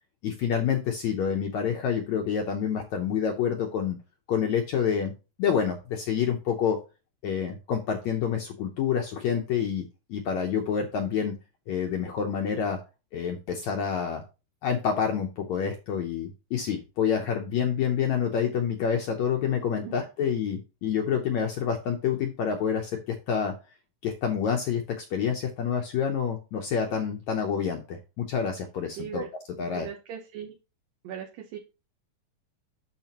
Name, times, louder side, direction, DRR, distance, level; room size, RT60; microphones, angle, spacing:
voice 1, 0.2-4.0 4.3-5.1 5.4-6.8 7.2-9.8 10.1-11.3 11.7-12.8 13.1-14.2 14.6-23.5 24.0-29.2 29.6-29.9, left 7 dB, 75° left, 3 dB, 1.7 m, -28 dB
voice 2, 29.0-29.3 29.6-30.5 31.0-31.6, right 9 dB, 75° right, 0 dB, 2.7 m, -39 dB
8.9 x 6.7 x 2.9 m, 0.30 s
omnidirectional pair, 4.2 m